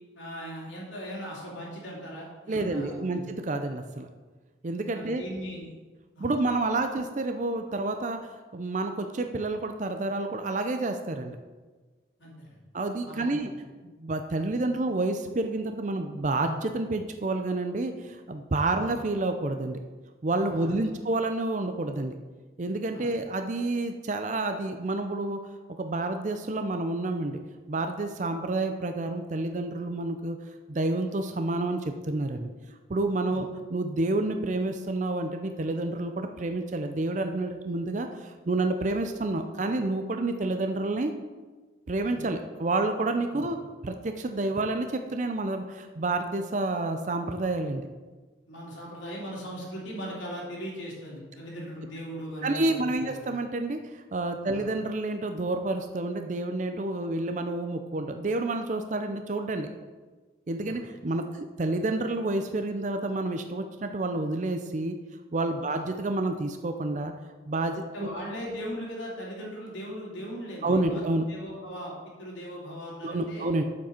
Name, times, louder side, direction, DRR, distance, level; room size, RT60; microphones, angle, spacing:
voice 1, 0.1-3.2 4.9-5.7 6.1-6.3 12.2-12.6 13.0-13.5 20.5-20.9 22.9-23.1 33.3-33.4 42.1-42.2 43.3-43.5 48.5-53.3 54.5-54.6 60.6-60.8 65.7-65.8 67.9-71.0 71.3-73.5, equal, 80° left, -4 dB, 2.9 m, -39 dB
voice 2, 2.5-4.1 4.6-5.2 6.2-8.2 8.5-11.4 12.7-13.5 14.0-19.8 20.2-22.2 22.6-25.4 25.8-27.4 27.7-30.4 30.7-32.5 32.9-41.1 41.9-43.6 43.8-47.9 52.4-59.7 60.5-65.0 65.3-67.1 67.5-68.1 70.6-71.2 73.0-73.6, right 2 dB, 40° right, 6 dB, 0.5 m, -29 dB
8.3 x 7.3 x 4.4 m, 1.3 s
head